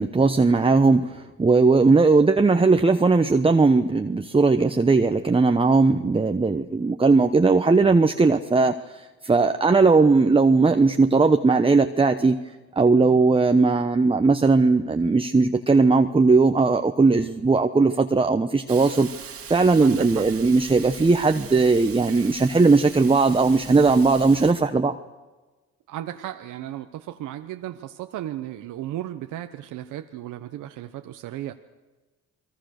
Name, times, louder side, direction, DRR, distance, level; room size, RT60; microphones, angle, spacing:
voice 1, 0.0-12.4 12.8-19.1 19.5-25.0, right 3 dB, 20° right, 7 dB, 1.0 m, -18 dB
Hiss, 18.7-24.5, right 7 dB, 50° right, 2.0 m, -41 dB
voice 2, 19.8-20.3 25.9-31.5, right 13 dB, 90° right, 8 dB, 1.1 m, -35 dB
30.0 x 22.0 x 6.6 m, 1.2 s
cardioid pair, 90°, 30 cm